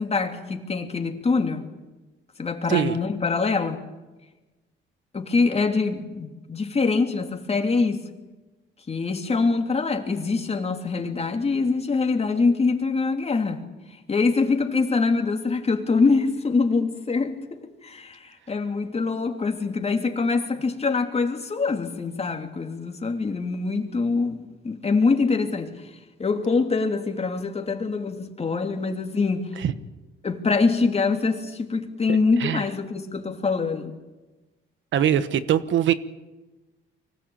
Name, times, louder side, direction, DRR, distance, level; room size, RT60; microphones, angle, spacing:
voice 1, 0.0-1.6 2.4-3.8 5.1-8.1 8.9-13.6 14.1-17.4 17.8-25.7 26.2-29.5 30.2-34.0, left 4 dB, 30° left, 3.1 m, -24 dB
voice 2, 32.1-32.6 34.9-35.9, right 10 dB, 70° right, 1.3 m, -23 dB
24.0 x 18.0 x 8.8 m
cardioid pair, 90°, 20 cm